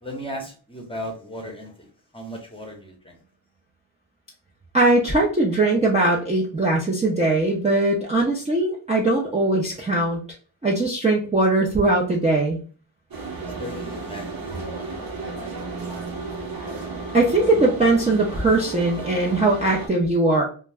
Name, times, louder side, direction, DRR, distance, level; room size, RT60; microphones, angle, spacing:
voice 1, 0.0-1.9 2.1-3.2 13.4-15.9, equal, 10° left, 1 dB, 0.8 m, -37 dB
voice 2, 4.7-10.2 10.6-12.6 17.1-20.4, right 2 dB, 15° right, -3 dB, 0.5 m, -20 dB
sound 1, 13.1-19.9, right 3 dB, 50° right, 0.8 m, -33 dB
2.2 x 2.1 x 3.3 m, 0.39 s
cardioid pair, 80°, 46 cm